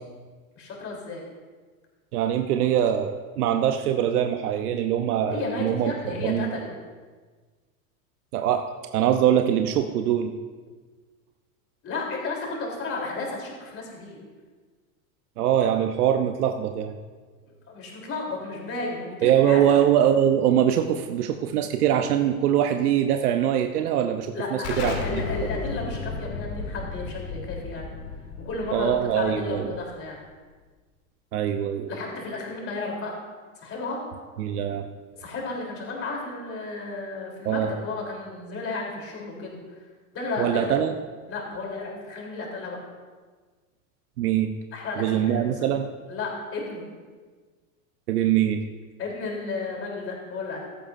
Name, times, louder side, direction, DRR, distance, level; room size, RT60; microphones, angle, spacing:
voice 1, 0.6-1.3 5.3-6.7 11.8-14.2 17.5-19.6 24.3-27.9 28.5-30.2 31.9-33.2 33.6-34.0 35.2-39.6 40.1-40.7 41.3-42.8 44.7-45.7 46.1-46.8 49.0-50.7, left 3 dB, 30° left, -1 dB, 3.5 m, -33 dB
voice 2, 2.1-5.9 6.2-6.5 8.3-10.3 15.4-16.9 19.2-25.2 28.7-29.7 31.3-31.9 34.4-34.9 37.4-37.7 40.4-40.9 44.2-44.5 45.0-45.9 48.1-48.6, right 10 dB, 90° right, 6 dB, 0.8 m, -23 dB
Explosion, 24.6-30.1, left 4 dB, 80° left, 2.1 m, -34 dB
15.5 x 12.5 x 2.6 m, 1.4 s
supercardioid pair, 130°, 44 cm